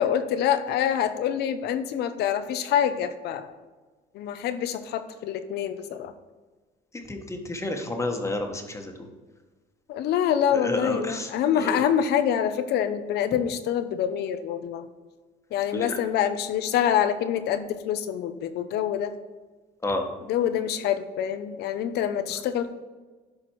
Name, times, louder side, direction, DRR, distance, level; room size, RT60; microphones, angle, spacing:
voice 1, 0.0-3.5 4.1-6.1 9.9-14.9 15.5-19.1 20.3-22.7, left 9 dB, 75° left, 10 dB, 0.8 m, -26 dB
voice 2, 7.1-8.9 10.5-11.3 11.6-11.7 15.7-15.9 19.8-20.0, left 2 dB, 15° left, 4 dB, 1.3 m, -30 dB
11.5 x 4.3 x 4.7 m, 1.3 s
cardioid pair, 110°, 17 cm